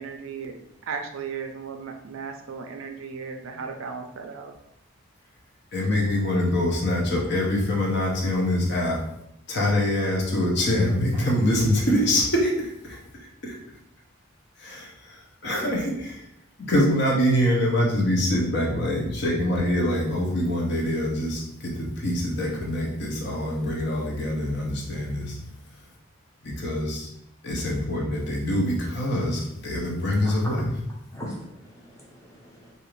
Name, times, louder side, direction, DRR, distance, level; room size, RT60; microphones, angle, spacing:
voice 1, 0.0-4.5, right 5 dB, 75° right, 4 dB, 0.4 m, -36 dB
voice 2, 5.7-9.0 9.5-13.0 13.4-13.5 14.6-15.2 15.4-16.2 16.7-25.4 26.4-27.1 27.4-30.7, left 1 dB, 55° left, -2 dB, 0.7 m, -24 dB
voice 3, 30.2-30.5 31.1-32.7, equal, 15° left, -4 dB, 0.7 m, -40 dB
2.6 x 2.4 x 3.1 m, 0.80 s
head